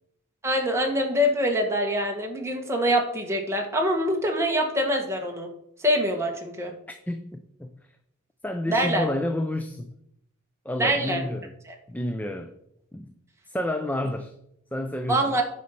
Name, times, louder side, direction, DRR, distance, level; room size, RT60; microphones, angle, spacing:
voice 1, 0.4-5.5 5.8-6.7 8.7-9.1 10.8-11.2 15.1-15.4, equal, 15° right, 1 dB, 1.6 m, -24 dB
voice 2, 7.1-7.8 8.4-9.9 10.6-11.6 11.9-12.5 12.9-13.1 13.5-14.3 14.7-15.4, left 1 dB, 10° left, 7 dB, 0.5 m, -30 dB
9.4 x 5.5 x 5.8 m, 0.76 s
head